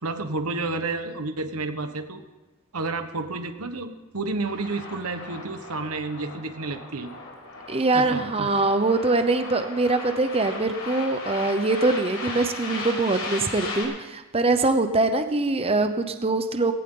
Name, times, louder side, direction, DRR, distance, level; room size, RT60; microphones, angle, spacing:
voice 1, 0.0-2.2 2.7-7.1 7.9-8.5, right 3 dB, 85° right, 8 dB, 1.3 m, -30 dB
sound 1, 4.5-13.8, left 3 dB, 80° left, 5.4 m, -37 dB
voice 2, 7.7-16.7, right 2 dB, 25° right, 8 dB, 0.8 m, -23 dB
18.5 x 17.5 x 3.9 m, 1.1 s
head